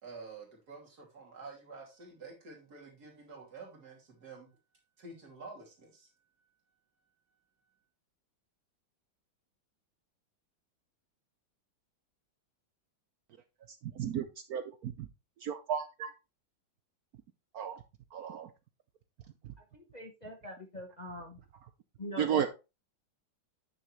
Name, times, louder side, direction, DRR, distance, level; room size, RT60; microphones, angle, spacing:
voice 1, 0.0-4.5 5.0-6.1, right 4 dB, 50° right, -1 dB, 3.2 m, -49 dB
voice 2, 14.5-15.1 15.4-16.1 17.5-17.8 18.1-18.5 22.2-22.5, right 8 dB, 70° right, 10 dB, 0.9 m, -33 dB
voice 3, 19.7-21.4 22.0-22.5, left 1 dB, 35° left, 3 dB, 0.7 m, -43 dB
9.3 x 6.3 x 3.2 m, 0.27 s
omnidirectional pair, 2.2 m